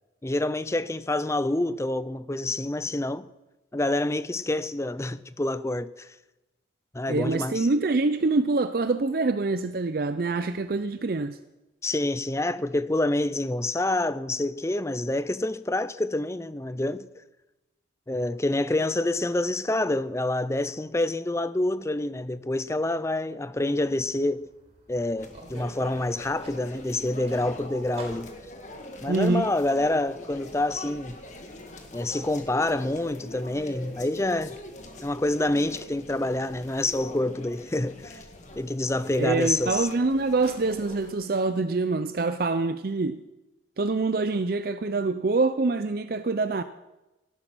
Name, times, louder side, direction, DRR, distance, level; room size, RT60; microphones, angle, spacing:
voice 1, 0.2-3.3 3.7-6.1 6.9-7.7 11.8-17.1 18.1-24.5 24.9-28.3 29.0-31.2 31.9-34.6 35.0-38.2 38.6-39.9, left 2 dB, 15° left, 0.5 m, -27 dB
voice 2, 7.1-11.4 29.1-29.5 39.2-43.2 43.8-46.6, right 3 dB, 50° right, 0.5 m, -25 dB
sound 1, 23.8-29.1, right 1 dB, 35° right, 3.9 m, -49 dB
sound 2, 25.2-41.1, left 1 dB, 40° left, 1.7 m, -43 dB
17.5 x 12.0 x 6.2 m
head